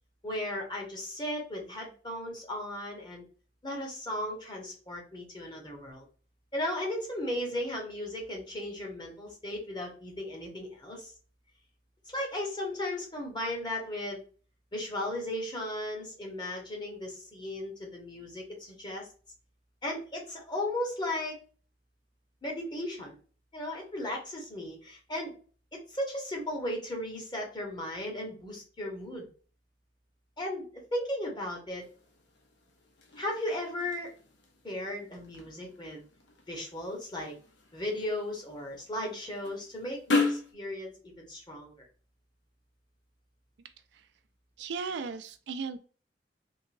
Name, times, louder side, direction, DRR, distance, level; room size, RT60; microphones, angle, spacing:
voice 1, 0.2-3.2 3.6-6.0 6.5-11.1 12.1-14.2 14.7-19.1 19.8-21.4 22.4-23.2 23.5-25.3 25.7-29.3 30.4-31.9 33.2-34.1 34.6-36.0 36.5-37.3 37.7-41.9, left 1 dB, 25° left, 0 dB, 1.1 m, -36 dB
sound 1, 31.8-40.5, left 3 dB, 70° left, 0.8 m, -37 dB
voice 2, 44.6-45.8, right 5 dB, 65° right, 9 dB, 0.4 m, -36 dB
3.7 x 2.7 x 2.6 m, 0.40 s
head